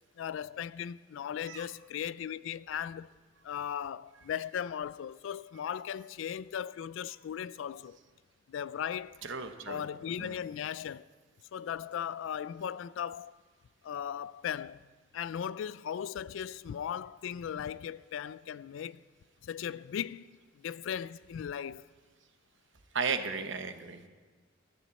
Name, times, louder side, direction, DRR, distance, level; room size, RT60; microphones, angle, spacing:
voice 1, 0.2-3.1 3.4-8.0 8.5-9.2 9.7-11.1 11.5-13.3 13.8-14.8 15.1-19.1 19.4-21.9, left 8 dB, 65° left, 0.3 m, -37 dB
voice 2, 9.2-9.9 10.2-10.3 22.9-24.1, right 5 dB, 65° right, 0.9 m, -35 dB
13.0 x 7.1 x 8.2 m
head